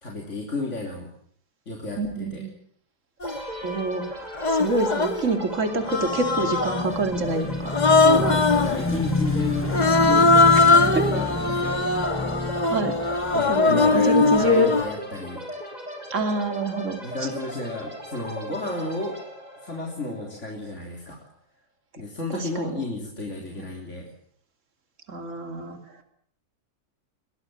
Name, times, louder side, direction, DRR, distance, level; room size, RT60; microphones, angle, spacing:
voice 1, 0.0-1.1 1.7-2.4 8.0-9.7 10.0-11.9 13.3-15.4 17.0-19.2 19.6-21.2 22.0-24.1, left 2 dB, 45° left, 0 dB, 3.9 m, -32 dB
voice 2, 2.0-2.5 3.6-7.7 10.5-11.1 12.2-12.3 12.7-12.9 13.5-14.7 16.1-17.0 22.3-22.7 23.6-23.7 25.1-25.8, right 1 dB, 50° right, 6 dB, 3.1 m, -26 dB
Human voice, 3.2-3.4 4.3-5.2 5.9-6.9 7.7-8.8 9.7-14.9, left 3 dB, 30° left, 1.3 m, -20 dB
sound 1, 3.2-20.8, equal, 25° right, 5.9 m, -38 dB
Motorcycle / Engine, 5.8-14.3, left 2 dB, 10° left, 0.7 m, -29 dB
23.5 x 18.5 x 9.1 m, 0.63 s
omnidirectional pair, 1.7 m